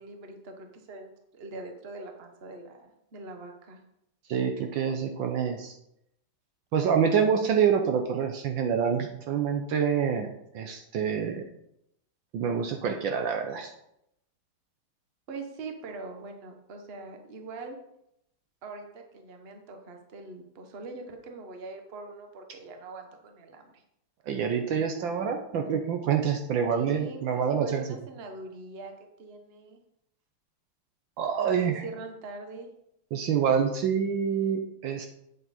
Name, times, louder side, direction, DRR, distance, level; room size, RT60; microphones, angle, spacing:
voice 1, 0.0-3.8 15.3-17.8 18.6-23.8 26.7-28.9 29.2-29.8 31.4-32.7, right 3 dB, 35° right, 4 dB, 1.0 m, -42 dB
voice 2, 4.3-5.7 6.7-11.4 12.3-13.7 24.3-27.8 31.2-31.8 33.1-35.1, right 7 dB, 70° right, 4 dB, 1.4 m, -27 dB
8.5 x 7.2 x 4.2 m, 0.79 s
omnidirectional pair, 2.4 m